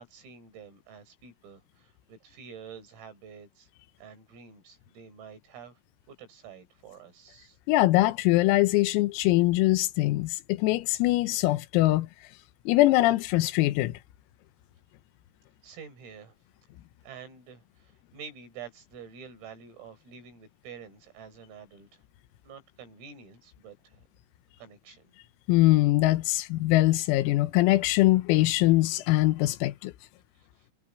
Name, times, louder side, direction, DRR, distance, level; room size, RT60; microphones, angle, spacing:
voice 1, 0.0-3.7 4.0-5.8 6.1-7.6 15.6-16.3 17.0-22.0 22.4-24.0 24.6-25.1 30.4-30.5, right 6 dB, 80° right, 9.9 m, -48 dB
voice 2, 7.7-12.1 12.7-13.9 25.5-29.9, left 18 dB, 90° left, 3.7 m, -22 dB
omnidirectional pair, 6.0 m